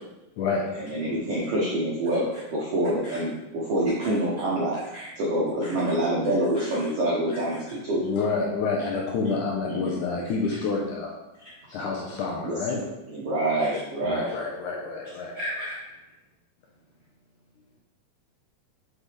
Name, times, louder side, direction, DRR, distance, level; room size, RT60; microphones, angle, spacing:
voice 1, 0.4-0.9 4.0-4.1 7.9-11.1 11.7-12.9 14.0-15.3, left 4 dB, 70° left, -2 dB, 2.0 m, -28 dB
voice 2, 0.9-4.8 5.2-8.0 9.7-9.9 12.4-12.5 13.1-14.3, right 1 dB, 75° right, -5 dB, 1.4 m, -26 dB
voice 3, 15.3-15.8, equal, 45° right, -9 dB, 1.1 m, -34 dB
6.5 x 5.7 x 3.4 m, 0.98 s
omnidirectional pair, 4.2 m